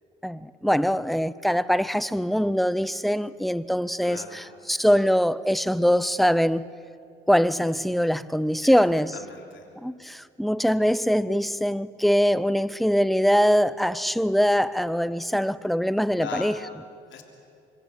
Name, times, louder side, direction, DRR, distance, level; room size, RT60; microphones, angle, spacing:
voice 1, 0.2-6.7 7.3-9.1 9.8-16.6, equal, ahead, 0.7 m, -23 dB
voice 2, 4.0-4.4 8.6-8.8 9.1-9.7 16.2-16.6 17.1-17.2, left 7 dB, 70° left, 3.3 m, -38 dB
25.5 x 22.0 x 8.4 m
cardioid pair, 90°, 20 cm